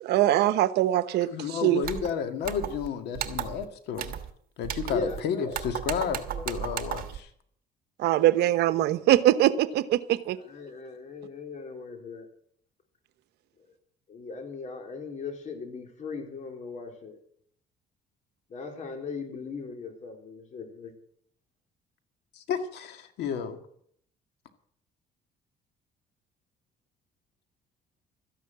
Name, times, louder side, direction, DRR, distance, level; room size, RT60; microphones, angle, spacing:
voice 1, 0.0-1.3 1.6-1.8 8.0-10.4, right 13 dB, 80° right, 13 dB, 1.0 m, -22 dB
voice 2, 1.1-4.2 4.6-7.3 22.3-23.6, left 7 dB, 80° left, 7 dB, 2.1 m, -32 dB
sound 1, 1.8-2.1 2.4-2.9 3.1-3.6 4.0-4.3 4.6-5.2 5.5-7.2, right 10 dB, 60° right, 1.4 m, -34 dB
voice 3, 4.9-5.6 6.1-6.5 8.1-8.2 10.3-12.3 13.6-13.7 14.1-17.2 18.5-20.9, left 4 dB, 45° left, 3 dB, 3.9 m, -38 dB
13.5 x 11.0 x 7.6 m, 0.65 s
cardioid pair, 110°, 17 cm